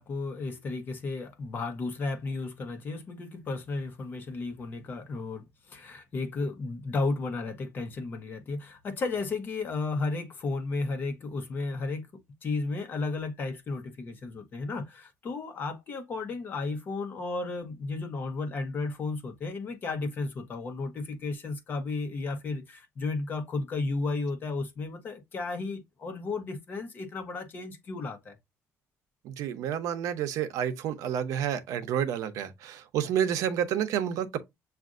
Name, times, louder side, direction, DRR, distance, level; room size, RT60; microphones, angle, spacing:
voice 1, 0.0-28.4, left 3 dB, 35° left, 0.9 m, -33 dB
voice 2, 29.2-34.4, right 9 dB, 75° right, 0.7 m, -29 dB
7.3 x 2.5 x 2.4 m
cardioid pair, 165°, 6 cm